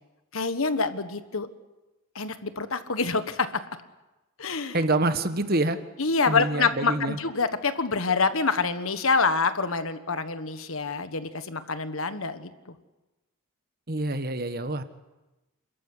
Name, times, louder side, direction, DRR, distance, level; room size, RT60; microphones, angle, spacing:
voice 1, 0.3-1.5 2.1-3.5 4.4-4.8 6.0-12.5, left 4 dB, 75° left, 11 dB, 1.5 m, -26 dB
voice 2, 4.7-5.8 6.3-7.2 13.9-14.8, right 2 dB, 45° right, 10 dB, 1.4 m, -26 dB
28.0 x 14.0 x 9.9 m, 1.1 s
head